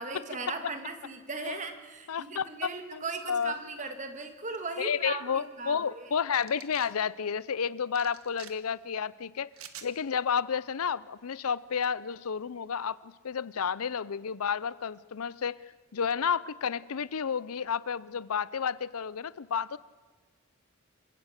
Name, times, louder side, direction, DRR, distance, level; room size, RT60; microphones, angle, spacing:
voice 1, 0.0-6.0, right 3 dB, 35° right, 7 dB, 2.2 m, -38 dB
voice 2, 2.1-2.5 2.9-3.0 3.3-3.5 4.8-9.5 9.8-15.6 15.9-19.8, left 7 dB, 75° left, 19 dB, 0.6 m, -31 dB
sound 1, 6.4-6.9 7.9-8.5 9.5-9.9, right 9 dB, 75° right, 1.6 m, -47 dB
27.5 x 16.5 x 6.6 m, 1.4 s
head